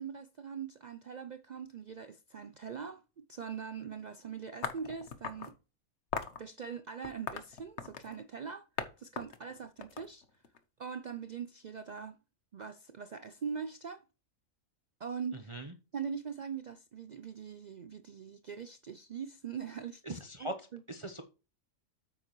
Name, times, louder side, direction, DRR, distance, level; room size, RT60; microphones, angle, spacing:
voice 1, 0.0-5.6 6.4-10.3 10.8-12.2 12.5-14.0 15.0-15.5 15.9-20.8, right 6 dB, 80° right, 0.4 m, -42 dB
sound 1, 4.6-5.5 6.1-6.4 7.0-8.2 8.8-8.9 9.2-10.6, left 6 dB, 60° left, 1.3 m, -39 dB
voice 2, 15.3-15.7 20.0-20.5 20.9-21.2, right 1 dB, 25° right, 0.9 m, -40 dB
8.8 x 7.6 x 3.1 m
omnidirectional pair, 1.4 m